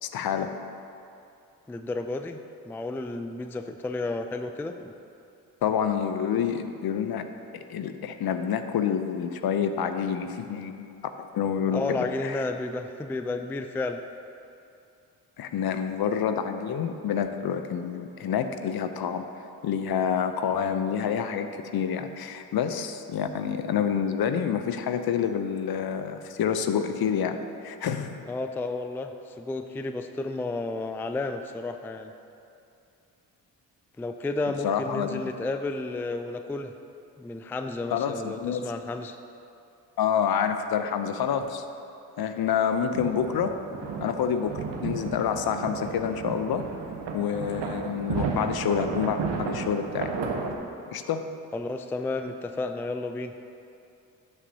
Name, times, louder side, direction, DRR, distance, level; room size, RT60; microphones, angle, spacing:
voice 1, 0.0-0.5 5.6-7.3 7.5-10.9 11.2-12.4 15.4-19.2 19.6-21.5 21.7-28.2 34.6-35.2 37.9-38.7 40.0-41.6 42.2-43.6 44.0-46.6 47.1-50.1 50.9-51.3, left 8 dB, 55° left, 9 dB, 0.7 m, -28 dB
voice 2, 1.7-4.9 11.7-14.0 28.3-32.1 34.0-36.7 37.2-39.2 51.5-53.3, left 2 dB, 5° left, 7 dB, 0.3 m, -32 dB
sound 1, 42.9-50.5, right 5 dB, 65° right, 1.0 m, -33 dB
12.0 x 6.9 x 2.8 m, 2.6 s
hypercardioid pair, 40°, 46 cm